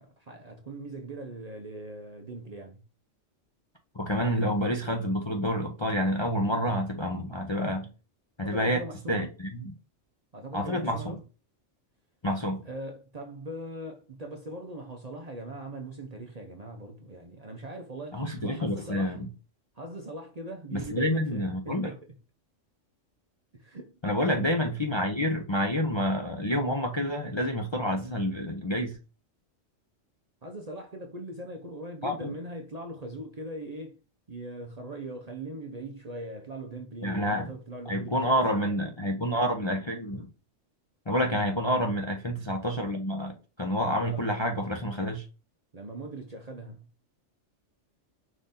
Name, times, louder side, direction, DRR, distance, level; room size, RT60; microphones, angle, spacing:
voice 1, 0.0-2.8 8.4-9.3 10.3-11.2 12.6-19.2 19.7-22.1 23.5-24.0 30.4-34.0 34.3-38.8 41.6-41.8 43.9-44.3 45.7-46.9, right 1 dB, 40° right, 0.7 m, -40 dB
voice 2, 3.9-7.9 8.4-8.8 9.1-9.7 10.5-11.0 12.2-12.6 18.1-19.3 20.7-21.9 24.0-28.9 32.0-32.3 37.0-37.5 37.9-40.3 41.1-45.3, equal, 30° left, 0.6 m, -28 dB
5.1 x 3.8 x 2.6 m
omnidirectional pair, 1.3 m